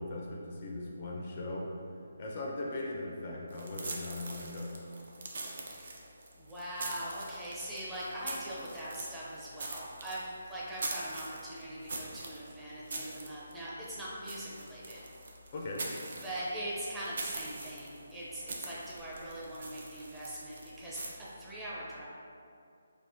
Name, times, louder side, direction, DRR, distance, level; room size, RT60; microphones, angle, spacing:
voice 1, 0.0-1.7 2.2-4.8 15.5-15.9, left 2 dB, 40° left, -2 dB, 0.4 m, -39 dB
sound 1, 3.5-21.1, right 2 dB, 60° right, 0.5 m, -43 dB
voice 2, 5.7-6.0 6.4-15.0 16.2-22.1, right 1 dB, 10° right, -9 dB, 0.5 m, -41 dB
3.4 x 2.5 x 2.6 m, 2.4 s
figure-of-eight pair, 155°, 0 cm